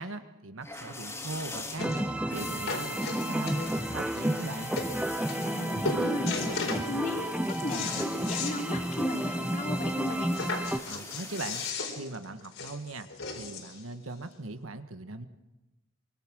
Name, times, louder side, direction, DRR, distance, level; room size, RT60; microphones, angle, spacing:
voice 1, 0.0-4.7 10.9-11.6 11.9-13.1 13.3-15.3, right 2 dB, 85° right, 9 dB, 1.5 m, -40 dB
sound 1, 0.6-11.7, left 2 dB, 15° left, 2.8 m, -43 dB
sound 2, 1.0-1.1 1.8-2.0 2.3-3.9 4.5-4.6 4.8-4.9 5.3-5.6 5.8-6.9 7.3-8.6 8.9-9.0 9.3-9.4 10.3-13.8 14.6-14.7, left 3 dB, 75° left, 4.4 m, -35 dB
sound 3, 1.8-10.8, right 1 dB, 5° right, 0.8 m, -31 dB
voice 2, 5.3-10.4, left 1 dB, 40° left, 2 dB, 3.0 m, -36 dB
24.5 x 24.0 x 6.2 m, 1.1 s
head